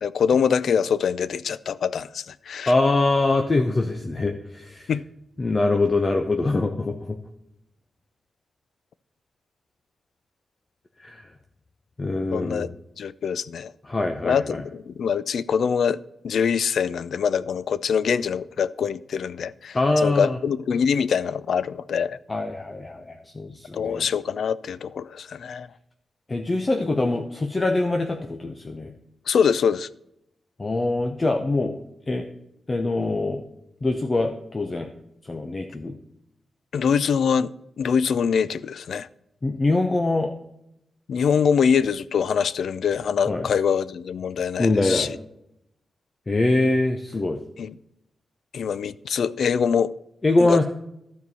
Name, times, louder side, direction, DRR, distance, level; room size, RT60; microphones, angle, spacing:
voice 1, 0.0-2.7 4.9-5.1 12.3-12.7 13.0-13.7 14.2-16.0 16.2-19.8 20.0-22.2 23.7-25.7 29.3-29.9 36.7-39.1 41.1-45.1 47.6-47.7 48.5-49.9 50.4-50.6, left 7 dB, 75° left, 18 dB, 0.4 m, -24 dB
voice 2, 2.6-4.9 5.4-7.2 11.0-11.2 12.0-12.7 13.8-14.6 19.7-20.4 22.3-24.1 26.3-28.9 30.6-32.3 32.7-33.4 33.8-34.9 35.2-35.9 39.4-40.3 43.3-43.5 44.6-45.1 46.3-47.4 50.2-50.6, left 2 dB, 25° left, 5 dB, 0.7 m, -23 dB
12.0 x 4.6 x 6.9 m, 0.80 s
wide cardioid pair, 160°, 0 cm